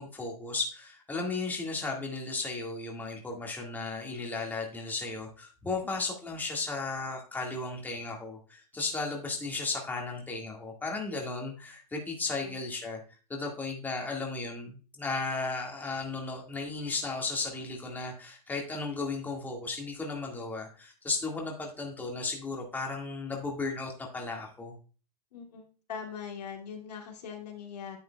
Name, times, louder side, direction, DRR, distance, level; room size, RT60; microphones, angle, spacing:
voice 1, 0.0-13.0 13.3-24.8, left 3 dB, 10° left, 0 dB, 1.8 m, -35 dB
voice 2, 25.3-28.0, left 7 dB, 80° left, 0 dB, 2.4 m, -41 dB
9.7 x 7.6 x 2.3 m, 0.36 s
hypercardioid pair, 130°, 20 cm